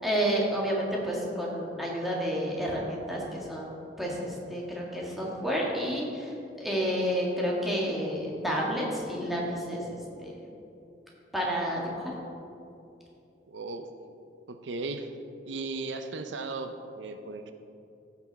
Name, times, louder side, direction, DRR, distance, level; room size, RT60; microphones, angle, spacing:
voice 1, 0.0-3.7 4.0-6.3 6.6-9.8 10.2-10.3 11.3-12.0, equal, ahead, -4 dB, 1.7 m, -30 dB
voice 2, 13.5-13.9 14.5-15.1 15.5-17.5, right 3 dB, 90° right, 7 dB, 0.6 m, -36 dB
15.0 x 6.1 x 4.1 m, 2.7 s
head